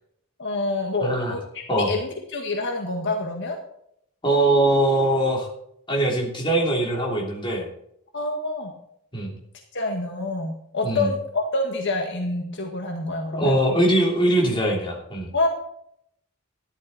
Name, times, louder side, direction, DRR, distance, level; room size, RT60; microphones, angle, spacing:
voice 1, 0.4-1.4 1.9-3.6 8.1-8.7 9.7-13.5 15.3-15.5, left 2 dB, 60° left, 2 dB, 1.7 m, -27 dB
voice 2, 1.0-1.3 1.7-1.9 4.2-5.5 5.9-7.7 9.1-9.3 10.8-11.1 13.3-15.3, right 1 dB, 25° left, -2 dB, 3.3 m, -22 dB
13.5 x 11.0 x 4.3 m, 0.72 s
head